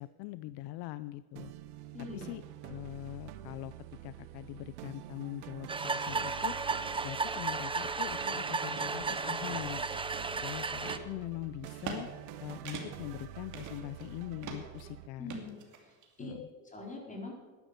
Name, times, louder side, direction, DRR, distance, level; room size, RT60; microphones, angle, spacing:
voice 1, 0.0-1.5 2.1-3.7 4.0-6.6 7.0-9.8 10.4-12.1 12.4-15.4 16.2-16.4, left 16 dB, 65° left, 15 dB, 0.6 m, -42 dB
sound 1, 1.4-15.1, right 12 dB, 90° right, 1.0 m, -47 dB
voice 2, 1.9-2.4 15.2-16.3 16.6-17.3, left 2 dB, 15° left, -1 dB, 4.1 m, -44 dB
sound 2, 5.7-11.0, right 4 dB, 10° right, 0.6 m, -34 dB
sound 3, 7.9-8.0 8.5-8.9 9.4-10.3 10.9-11.0 11.6-12.0 12.3-12.4 12.7-13.1 13.5-14.1 14.4-14.8 15.3-16.1, right 5 dB, 40° right, 2.6 m, -43 dB
11.5 x 10.5 x 6.7 m, 1.3 s
supercardioid pair, 115°, 44 cm